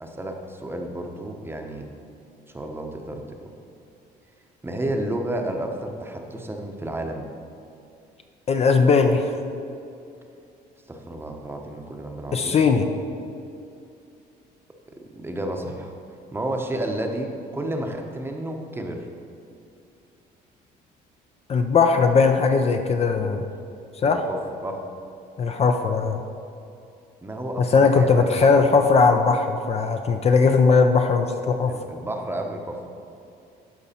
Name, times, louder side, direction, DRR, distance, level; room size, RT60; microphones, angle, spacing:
voice 1, 0.0-1.9 2.5-3.2 4.6-7.3 10.9-12.6 15.1-15.9 16.3-19.0 24.0-24.8 27.2-28.9 31.7-32.9, right 1 dB, 15° right, 3 dB, 0.9 m, -31 dB
voice 2, 8.5-9.3 12.3-12.9 21.5-23.5 24.0-24.2 25.4-26.2 27.6-31.7, left 4 dB, 40° left, 5 dB, 0.6 m, -19 dB
12.0 x 4.7 x 4.3 m, 2.6 s
cardioid pair, 110°, 17 cm